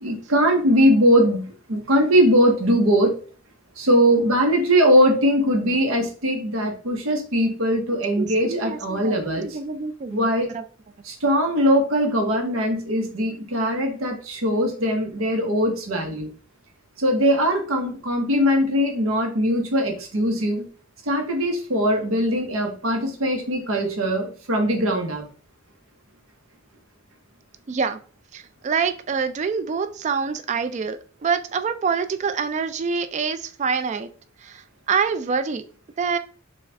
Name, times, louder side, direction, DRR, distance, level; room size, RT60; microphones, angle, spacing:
voice 1, 0.0-3.1 3.8-9.5 10.1-10.5 11.0-16.3 17.0-20.7 21.1-25.2, equal, 90° right, 3 dB, 0.9 m, -21 dB
voice 2, 8.2-10.6 27.7-28.0 28.3-34.1 34.4-35.6 36.0-36.2, right 5 dB, 35° right, 10 dB, 0.3 m, -26 dB
4.1 x 2.4 x 3.3 m, 0.40 s
head